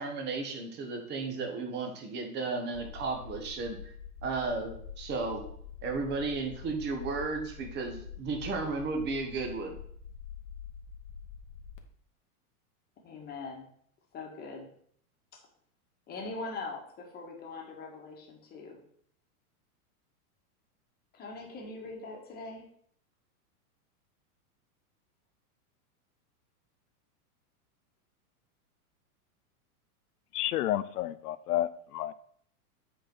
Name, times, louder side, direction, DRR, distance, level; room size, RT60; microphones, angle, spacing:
voice 1, 0.0-3.9 4.2-5.4 5.8-9.8, right 4 dB, 25° right, 3 dB, 1.3 m, -34 dB
sound 1, 2.7-11.8, left 7 dB, 55° left, 1.2 m, -46 dB
voice 2, 13.0-13.6 14.1-14.7 16.1-18.8 21.1-22.7, left 3 dB, 20° left, 0 dB, 1.6 m, -42 dB
voice 3, 30.3-32.1, left 13 dB, 85° left, 15 dB, 0.7 m, -31 dB
8.0 x 4.4 x 4.6 m, 0.63 s
supercardioid pair, 155°, 45 cm